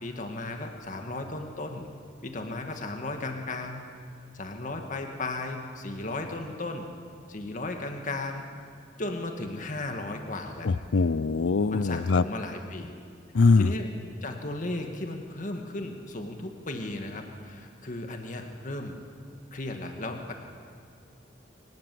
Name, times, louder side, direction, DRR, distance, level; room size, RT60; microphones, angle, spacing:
voice 1, 0.0-1.9 2.2-3.8 4.3-6.9 7.3-8.5 9.0-10.7 11.7-12.9 13.6-13.9 14.2-19.0 19.5-20.3, left 2 dB, 45° left, 4 dB, 1.9 m, -35 dB
voice 2, 10.6-12.2 13.3-13.7, left 4 dB, 85° left, 17 dB, 0.5 m, -22 dB
24.0 x 19.5 x 7.8 m, 2.1 s
head